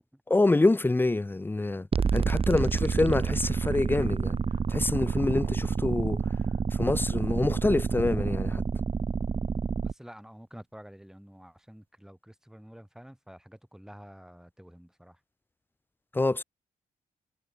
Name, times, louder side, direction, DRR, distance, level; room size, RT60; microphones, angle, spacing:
voice 1, 0.3-1.9 2.1-4.3 4.7-6.2 6.8-8.6 16.1-16.4, left 2 dB, 15° left, 0.5 m, -26 dB
sound 1, 1.9-9.9, right 5 dB, 40° right, 1.0 m, -28 dB
voice 2, 9.8-15.2, equal, 5° right, 5.7 m, -49 dB
cardioid pair, 65°, 15 cm